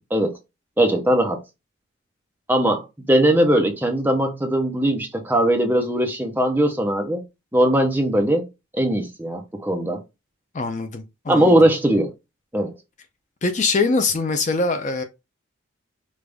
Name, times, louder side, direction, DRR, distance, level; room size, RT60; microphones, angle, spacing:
voice 1, 0.8-1.4 2.5-7.2 7.5-8.5 8.7-10.0 11.3-12.1 12.5-12.7, right 1 dB, 10° right, 0.7 m, -20 dB
voice 2, 10.5-11.5 13.4-15.0, left 3 dB, 35° left, 0.5 m, -23 dB
5.2 x 2.5 x 3.4 m
head